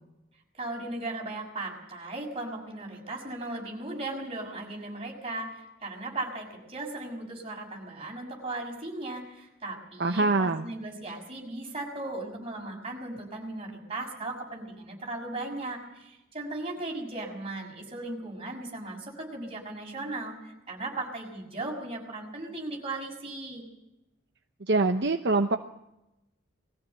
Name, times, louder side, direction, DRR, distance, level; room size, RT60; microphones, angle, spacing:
voice 1, 0.5-23.6, right 2 dB, 30° right, 0 dB, 6.1 m, -37 dB
voice 2, 10.0-10.7 24.7-25.6, right 3 dB, 55° right, 6 dB, 0.9 m, -24 dB
21.5 x 15.5 x 8.2 m, 0.89 s
head